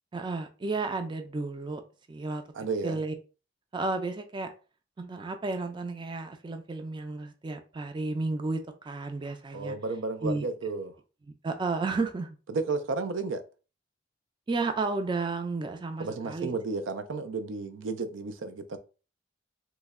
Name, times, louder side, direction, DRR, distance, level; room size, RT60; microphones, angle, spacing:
voice 1, 0.1-1.8 2.1-2.4 2.8-3.1 3.7-4.5 5.0-9.8 10.2-10.5 11.4-12.4 14.5-16.5, right 3 dB, 25° right, 0.4 m, -32 dB
voice 2, 2.5-3.0 9.5-10.9 12.5-13.4 16.0-18.8, right 3 dB, 90° right, 0.4 m, -32 dB
3.0 x 2.1 x 3.5 m
head